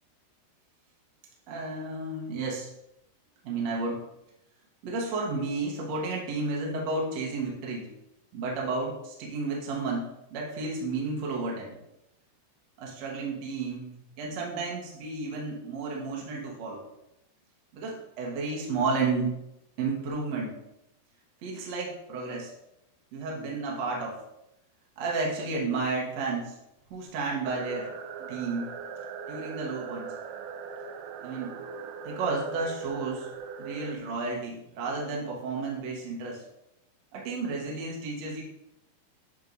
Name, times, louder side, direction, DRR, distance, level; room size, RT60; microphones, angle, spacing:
voice 1, 1.5-2.7 3.4-4.0 4.8-7.9 8.3-11.7 12.8-13.9 14.2-16.8 17.7-19.3 19.8-20.5 21.4-22.5 23.1-24.2 25.0-26.6 26.9-27.9 28.2-28.7 29.3-30.1 31.2-31.6 32.0-33.3 33.6-36.4 37.1-38.4, right 3 dB, 65° right, -3 dB, 1.8 m, -32 dB
sound 1, 27.4-34.0, right 6 dB, 80° right, 2.4 m, -40 dB
10.5 x 6.3 x 2.7 m, 0.86 s
omnidirectional pair, 5.0 m